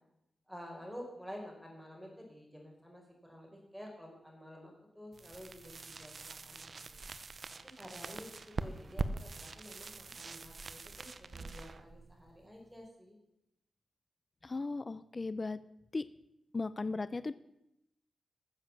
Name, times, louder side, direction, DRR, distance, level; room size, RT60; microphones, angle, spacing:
voice 1, 0.5-6.8 7.6-13.2, equal, ahead, 0 dB, 4.7 m, -50 dB
sound 1, 5.1-12.9, right 3 dB, 50° right, 0.8 m, -43 dB
voice 2, 14.4-15.6 15.9-16.0 16.5-17.3, left 3 dB, 35° left, 15 dB, 0.5 m, -36 dB
13.5 x 7.4 x 7.4 m, 0.83 s
wide cardioid pair, 90°, 0 cm